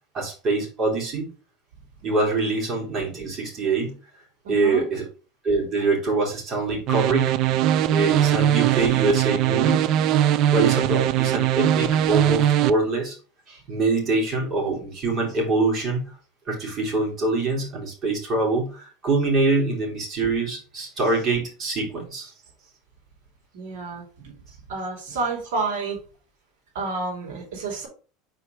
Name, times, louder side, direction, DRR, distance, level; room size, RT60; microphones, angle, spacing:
voice 1, 0.1-1.3 2.0-4.0 4.5-5.1 5.4-7.3 7.9-10.0 10.5-13.2 13.5-16.1 16.5-22.3, right 3 dB, 35° right, -3 dB, 3.8 m, -24 dB
voice 2, 4.4-4.9 23.5-24.3 24.7-26.0 26.7-27.9, right 3 dB, 80° right, -3 dB, 3.0 m, -30 dB
sound 1, 6.9-12.7, right 12 dB, 55° right, 0.5 m, -20 dB
4.8 x 4.7 x 4.7 m, 0.37 s
supercardioid pair, 105°, 0 cm